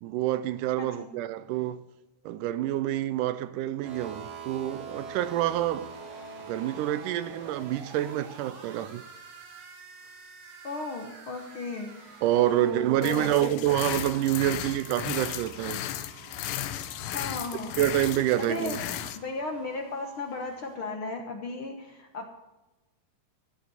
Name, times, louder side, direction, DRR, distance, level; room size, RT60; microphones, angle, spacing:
voice 1, 0.0-1.8 2.3-5.9 6.5-9.0 12.2-15.8 17.8-18.8, right 13 dB, 80° right, 2.0 m, -27 dB
voice 2, 0.8-1.1 10.6-12.2 12.5-13.5 17.1-17.8 18.4-22.3, left 3 dB, 55° left, 1.6 m, -35 dB
sound 1, 3.8-20.8, right 5 dB, 65° right, 3.6 m, -47 dB
sound 2, 13.0-19.2, left 12 dB, 90° left, 2.5 m, -35 dB
14.0 x 8.4 x 7.7 m
omnidirectional pair, 3.9 m